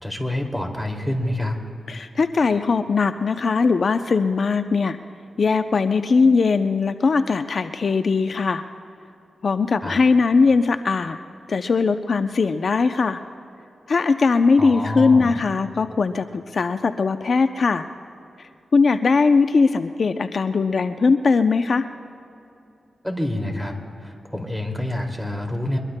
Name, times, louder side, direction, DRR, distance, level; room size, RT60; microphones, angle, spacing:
voice 1, 0.0-1.6 9.8-10.0 14.6-15.5 23.0-25.8, left 1 dB, ahead, 2 dB, 2.4 m, -27 dB
voice 2, 1.9-5.0 5.4-8.6 9.4-11.2 11.5-13.2 13.9-17.8 18.4-21.9, left 4 dB, 60° left, 9 dB, 0.5 m, -20 dB
23.5 x 22.0 x 2.2 m, 2.7 s
cardioid pair, 60°, 0 cm